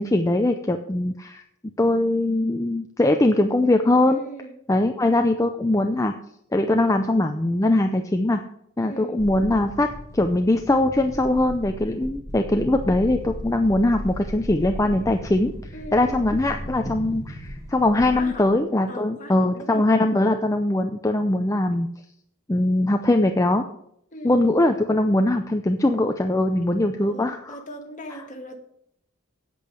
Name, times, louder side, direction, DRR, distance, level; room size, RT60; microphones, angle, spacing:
voice 1, 0.0-1.4 1.8-4.2 4.7-6.1 6.5-8.4 8.8-9.9 10.1-15.5 15.9-21.9 22.5-23.6 24.2-27.6 28.1-28.2, left 1 dB, 15° left, 5 dB, 0.5 m, -21 dB
voice 2, 4.1-4.5 8.8-9.2 15.7-16.3 18.0-18.5 18.9-19.8 24.1-24.5 27.1-28.6, equal, 35° left, 4 dB, 1.7 m, -39 dB
sound 1, 9.2-18.6, equal, 15° right, 2.1 m, -36 dB
8.7 x 8.4 x 6.3 m, 0.71 s
head